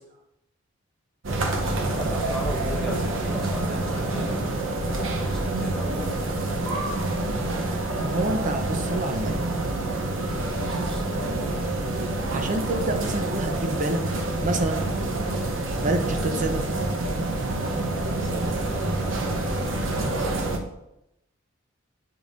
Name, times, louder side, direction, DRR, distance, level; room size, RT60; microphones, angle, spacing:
sound 1, 1.2-20.6, right 2 dB, 75° right, 0.8 m, -27 dB
voice 1, 1.6-7.1 10.5-11.3 16.7-16.8 17.7-20.3, equal, 5° left, -4 dB, 1.1 m, -37 dB
voice 2, 8.0-9.4 12.3-14.1 14.4-14.8 15.8-16.6, right 1 dB, 40° right, 6 dB, 0.7 m, -27 dB
7.9 x 5.2 x 2.6 m, 0.87 s
head